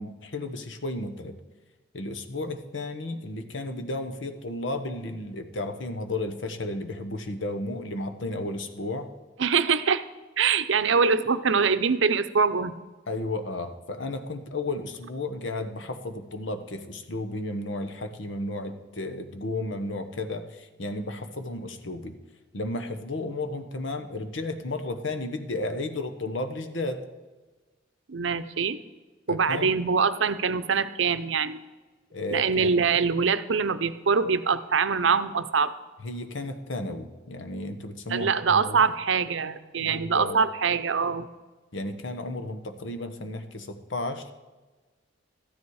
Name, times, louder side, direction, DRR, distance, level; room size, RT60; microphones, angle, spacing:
voice 1, 0.0-1.4 1.9-9.1 13.1-22.2 22.5-27.0 29.3-29.7 32.1-32.8 36.0-38.8 39.8-40.4 41.7-44.3, left 2 dB, 75° left, 8 dB, 1.1 m, -33 dB
voice 2, 9.4-10.0 10.4-12.7 28.1-28.8 29.3-31.6 32.3-35.7 38.1-41.3, right 5 dB, 75° right, 12 dB, 0.7 m, -24 dB
13.5 x 9.9 x 4.8 m, 1.3 s
head